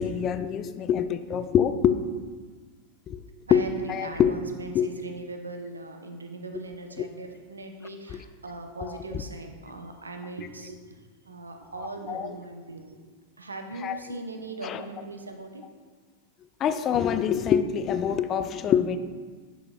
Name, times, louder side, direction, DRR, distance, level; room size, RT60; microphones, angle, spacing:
voice 1, 0.0-2.0 3.1-3.2 3.5-3.6 3.9-4.3 4.7-4.9 8.8-9.0 12.1-12.3 13.8-13.9 14.6-14.8 16.6-19.0, left 8 dB, 30° left, 11 dB, 0.4 m, -24 dB
voice 2, 3.5-13.1 13.4-15.7, right 2 dB, 75° right, 5 dB, 0.6 m, -40 dB
9.0 x 6.7 x 2.3 m, 1.5 s
figure-of-eight pair, 90°, 0 cm